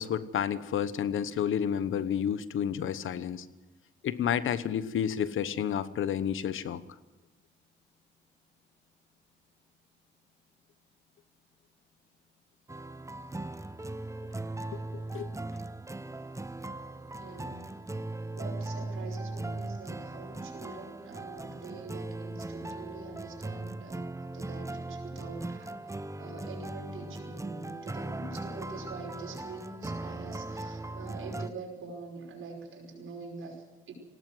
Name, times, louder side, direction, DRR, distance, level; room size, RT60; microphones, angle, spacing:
voice 1, 0.0-3.5 4.0-6.8 14.7-14.8 15.1-15.3, left 9 dB, 85° left, 15 dB, 1.1 m, -30 dB
sound 1, 12.7-31.5, right 2 dB, 15° right, 1.0 m, -39 dB
voice 2, 17.1-17.7 18.3-25.7 26.1-33.9, right 3 dB, 85° right, 1 dB, 5.5 m, -44 dB
20.0 x 17.5 x 7.9 m, 1.1 s
cardioid pair, 70°, 20 cm